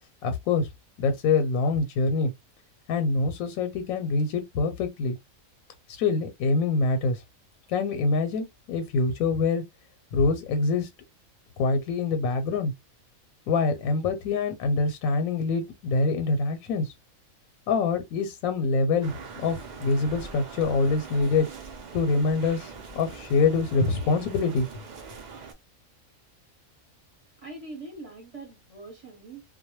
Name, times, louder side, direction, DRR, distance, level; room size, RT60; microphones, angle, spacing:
voice 1, 0.2-0.7 1.0-2.3 2.9-5.2 5.9-7.2 7.7-9.6 10.1-10.9 11.6-12.7 13.5-16.9 17.7-21.5 21.9-24.7, left 4 dB, 85° left, 1.0 m, -25 dB
sound 1, 19.0-25.5, right 5 dB, 55° right, 0.5 m, -42 dB
voice 2, 27.4-29.4, right 2 dB, 30° right, 0.9 m, -42 dB
2.2 x 2.1 x 2.9 m
omnidirectional pair, 1.4 m